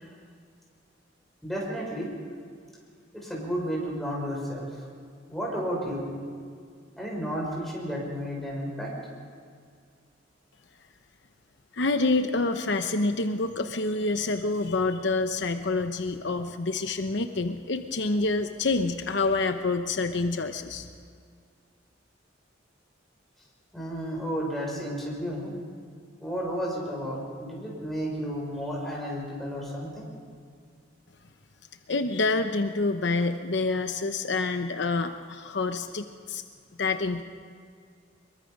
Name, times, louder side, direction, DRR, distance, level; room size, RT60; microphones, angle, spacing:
voice 1, 1.4-2.1 3.1-4.7 5.3-6.1 7.0-8.9 23.7-25.5 26.2-30.1, equal, ahead, -4 dB, 6.3 m, -32 dB
voice 2, 11.7-20.9 31.9-36.4 36.8-37.2, left 3 dB, 65° left, 7 dB, 0.9 m, -27 dB
24.0 x 22.5 x 5.3 m, 2.2 s
head